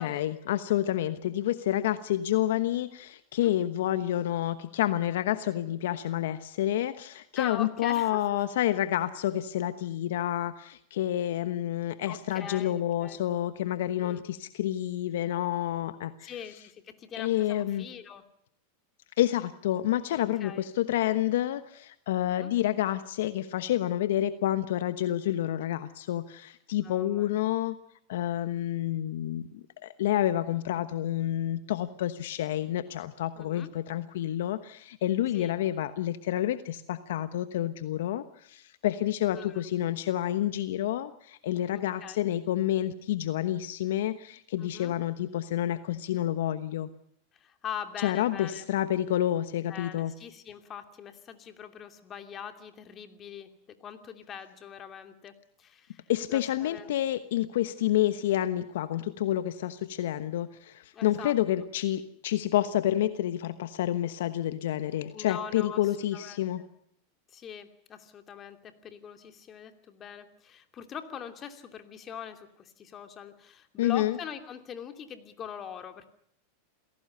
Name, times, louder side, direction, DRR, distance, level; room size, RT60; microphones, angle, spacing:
voice 1, 0.0-16.3 17.2-17.9 19.2-27.8 28.1-46.9 48.0-50.1 56.1-66.6 73.8-74.2, left 12 dB, 70° left, 12 dB, 1.1 m, -29 dB
voice 2, 7.4-8.4 12.1-13.2 14.0-14.2 16.2-18.2 20.1-20.6 22.3-22.5 26.8-27.3 33.4-33.7 35.3-35.5 39.3-39.7 41.7-42.2 44.6-44.9 47.3-48.7 49.7-56.9 60.9-61.7 65.1-65.8 66.1-66.7 67.3-76.1, left 8 dB, 30° left, 7 dB, 2.8 m, -42 dB
27.5 x 17.5 x 6.8 m, 0.69 s
hypercardioid pair, 105°, 0 cm